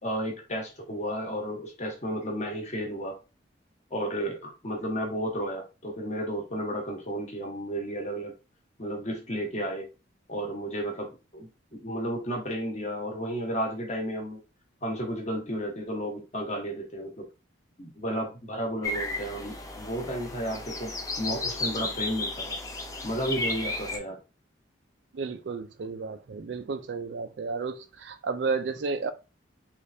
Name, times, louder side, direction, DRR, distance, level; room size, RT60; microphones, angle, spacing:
voice 1, 0.0-3.2 3.9-8.3 8.8-9.9 10.3-14.4 14.8-17.2 17.8-22.5 23.0-24.2, equal, 35° left, 1.0 m, -33 dB
sound 1, 18.8-24.0, left 2 dB, 15° left, 0.5 m, -33 dB
voice 2, 25.1-29.1, right 4 dB, 65° right, 0.4 m, -32 dB
3.3 x 3.2 x 2.6 m
head